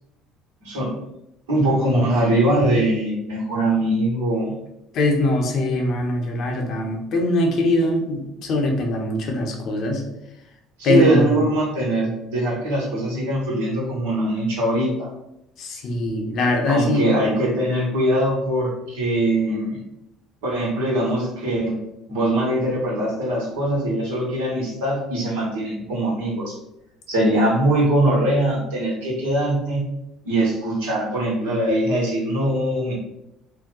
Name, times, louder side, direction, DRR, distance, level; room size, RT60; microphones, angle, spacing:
voice 1, 1.5-4.5 10.8-15.1 16.7-19.8 20.4-21.8 22.1-26.5 27.1-29.9 30.2-32.9, right 1 dB, 85° right, -4 dB, 1.2 m, -22 dB
voice 2, 4.9-10.0 10.8-11.5 15.6-17.1, left 2 dB, 60° left, 1 dB, 0.8 m, -22 dB
2.8 x 2.2 x 3.7 m, 0.85 s
hypercardioid pair, 75°, 0 cm